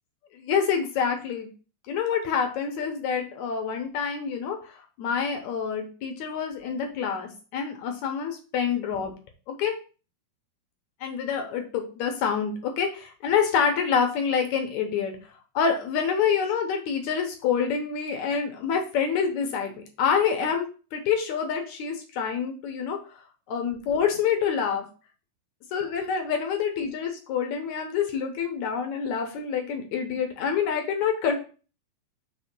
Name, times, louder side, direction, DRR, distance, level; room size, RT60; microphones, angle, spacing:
voice 1, 0.3-1.5 1.9-9.1 9.5-9.8 11.0-15.2 15.6-19.7 20.0-23.0 23.5-24.9 25.7-31.4, left 7 dB, 65° left, 4 dB, 1.9 m, -27 dB
6.1 x 3.5 x 6.0 m, 0.36 s
omnidirectional pair, 4.4 m